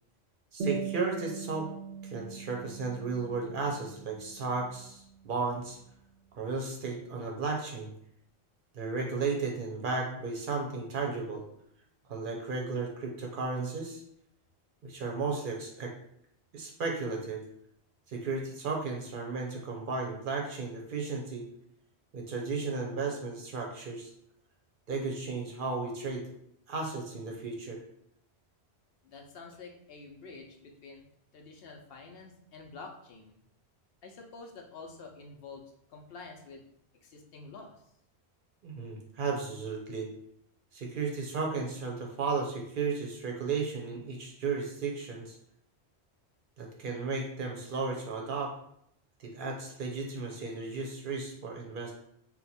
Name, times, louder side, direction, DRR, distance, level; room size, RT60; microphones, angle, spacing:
voice 1, 0.5-1.7 2.0-5.8 6.3-7.9 8.7-11.4 12.1-14.0 14.8-15.9 16.5-17.4 18.1-21.5 22.1-24.1 24.9-26.3 26.7-27.8 38.6-40.1 40.7-45.4 46.6-48.5 49.2-51.9, right 4 dB, 60° right, 1 dB, 0.7 m, -34 dB
sound 1, 0.6-5.6, right 5 dB, 85° right, 0.9 m, -41 dB
voice 2, 29.0-31.0 31.3-33.4 34.0-36.6 37.0-37.8, left 4 dB, 70° left, 2 dB, 0.8 m, -48 dB
2.7 x 2.2 x 4.1 m, 0.72 s
omnidirectional pair, 1.1 m